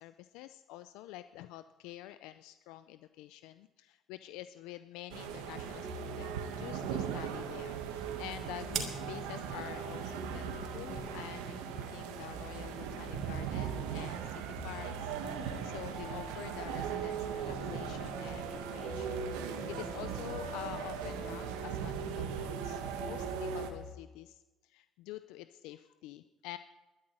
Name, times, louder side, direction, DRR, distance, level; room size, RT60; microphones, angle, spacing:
voice 1, 0.0-26.6, left 14 dB, 80° left, 12 dB, 0.5 m, -47 dB
sound 1, 5.1-23.9, right 1 dB, 25° right, 3.2 m, -46 dB
sound 2, 5.1-23.7, right 8 dB, 85° right, 1.6 m, -39 dB
sound 3, 6.5-13.3, right 7 dB, 60° right, 3.0 m, -48 dB
12.5 x 9.7 x 9.1 m, 1.1 s
supercardioid pair, 70°, 0 cm